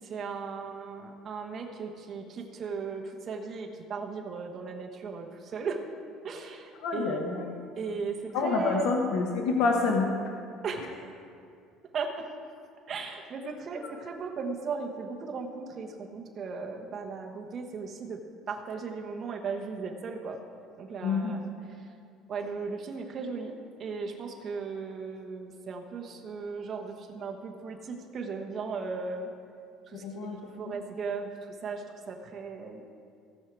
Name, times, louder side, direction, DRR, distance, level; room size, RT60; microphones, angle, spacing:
voice 1, 0.0-5.8 6.2-7.2 7.8-8.9 10.6-11.0 11.9-12.3 12.9-18.2 18.5-20.4 20.8-21.5 22.3-29.3 29.9-32.8, right 5 dB, 30° right, 2 dB, 1.1 m, -37 dB
voice 2, 6.8-7.5 8.3-10.1 21.0-21.3 30.0-30.4, left 4 dB, 60° left, 1 dB, 1.0 m, -27 dB
17.5 x 6.4 x 4.6 m, 2.4 s
cardioid pair, 175°, 0 cm